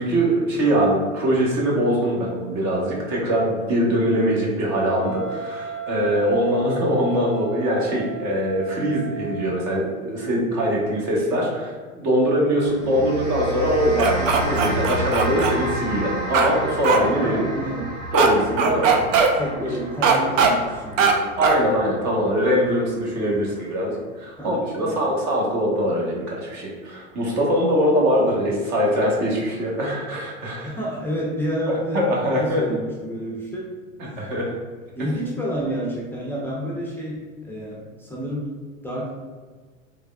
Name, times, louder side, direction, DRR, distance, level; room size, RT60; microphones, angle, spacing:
voice 1, 0.0-17.4 18.1-19.0 19.3-19.7 21.4-30.7 31.9-32.6 34.2-34.5, equal, 40° right, -3 dB, 1.2 m, -22 dB
voice 2, 4.0-4.4 6.3-6.6 12.6-13.1 17.2-17.9 18.6-21.3 23.1-23.5 24.4-25.2 28.2-28.3 30.6-33.7 34.0-34.2 35.0-38.5 38.8-39.1, equal, 5° left, -5 dB, 0.5 m, -30 dB
Wind instrument woodwind instrument, 5.0-9.7, right 5 dB, 65° left, 0.5 m, -35 dB
sound 1, 12.7-23.2, right 1 dB, 85° right, 1.1 m, -31 dB
sound 2, 14.0-15.5 16.3-16.5 16.8-17.0 18.1-18.3 18.6-19.3 20.0-20.5 21.0-21.1 21.4-21.6, right 6 dB, 65° right, 0.6 m, -19 dB
3.5 x 3.3 x 2.3 m, 1.4 s
hypercardioid pair, 100°, 41 cm